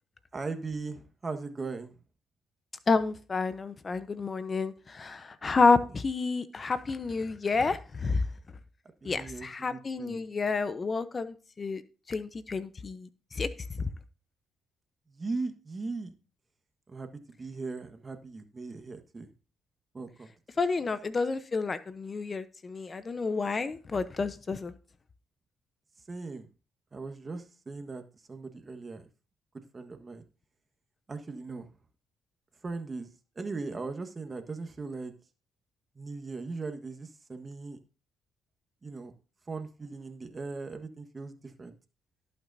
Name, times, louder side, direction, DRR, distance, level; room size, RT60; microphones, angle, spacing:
voice 1, 0.3-2.0 5.5-5.8 9.0-10.3 15.1-16.1 16.9-17.1 17.4-19.3 19.9-20.3 26.1-26.5 26.9-28.0 28.3-29.1 29.7-30.2 31.1-31.7 32.6-33.1 33.3-35.1 35.9-37.8 38.8-39.1 39.5-41.7, right 3 dB, 35° right, 7 dB, 1.4 m, -39 dB
voice 2, 2.9-8.2 9.0-11.8 12.1-13.5 13.7-13.9 20.6-24.7, left 4 dB, 35° left, 13 dB, 0.8 m, -29 dB
18.0 x 6.1 x 2.7 m, 0.35 s
supercardioid pair, 65°, 0 cm